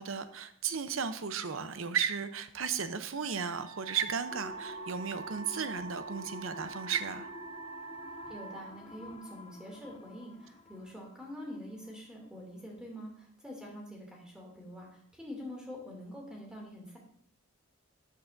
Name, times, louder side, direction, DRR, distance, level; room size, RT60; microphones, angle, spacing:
voice 1, 0.0-7.3, right 6 dB, 70° right, 11 dB, 0.7 m, -34 dB
Wind instrument woodwind instrument, 3.2-8.7, right 5 dB, 90° right, 1.1 m, -45 dB
sound 1, 4.3-12.0 12.3-12.4, left 3 dB, 25° left, 0.5 m, -49 dB
voice 2, 8.3-17.0, equal, 5° right, -2 dB, 2.5 m, -45 dB
12.5 x 8.4 x 2.6 m, 0.63 s
head